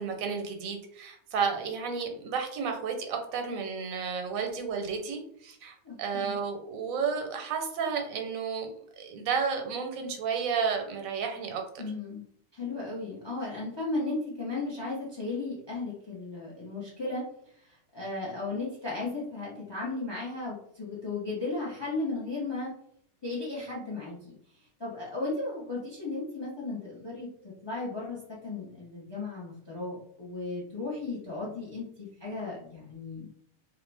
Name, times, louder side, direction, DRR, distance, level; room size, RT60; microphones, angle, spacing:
voice 1, 0.0-11.8, right 6 dB, 85° right, 4 dB, 1.0 m, -32 dB
voice 2, 5.8-6.4 11.8-12.2 12.5-17.3 17.7-22.7 23.2-24.4 24.8-33.3, left 3 dB, 40° left, -5 dB, 0.4 m, -35 dB
2.4 x 2.1 x 3.1 m, 0.69 s
omnidirectional pair, 1.4 m